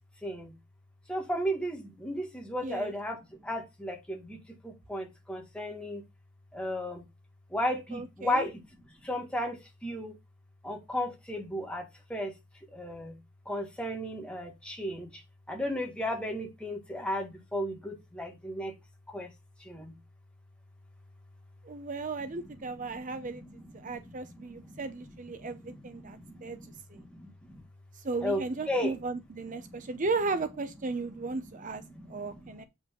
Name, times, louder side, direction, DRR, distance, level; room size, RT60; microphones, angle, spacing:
voice 1, 0.2-0.5 1.1-3.2 3.4-6.0 6.5-7.1 7.5-8.6 9.0-10.2 10.6-12.3 12.7-13.2 13.5-15.1 15.5-18.7 19.1-19.3 19.6-19.9 22.9-23.5 23.8-24.8 25.3-27.6 28.2-29.0 29.6-29.8 31.9-32.4, equal, 5° left, 1.9 m, -35 dB
voice 2, 2.6-2.9 7.9-8.5 21.6-23.4 23.7-26.6 26.9-27.0 27.9-31.8 32.1-32.6, right 3 dB, 40° right, 0.6 m, -35 dB
8.1 x 5.3 x 3.8 m
head